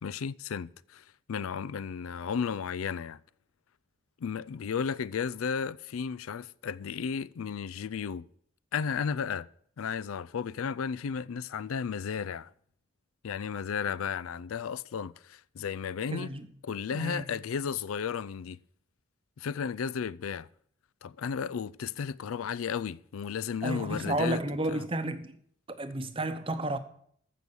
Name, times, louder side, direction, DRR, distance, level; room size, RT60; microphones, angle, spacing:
voice 1, 0.0-3.2 4.2-8.3 8.7-9.5 9.8-12.5 13.2-16.3 16.6-18.6 19.4-20.5 21.0-24.4 24.7-24.8, left 6 dB, 85° left, 0.4 m, -34 dB
voice 2, 16.1-16.5 16.9-17.3 23.6-25.4 25.7-26.8, right 1 dB, 25° right, 0.8 m, -32 dB
14.5 x 6.2 x 7.0 m
head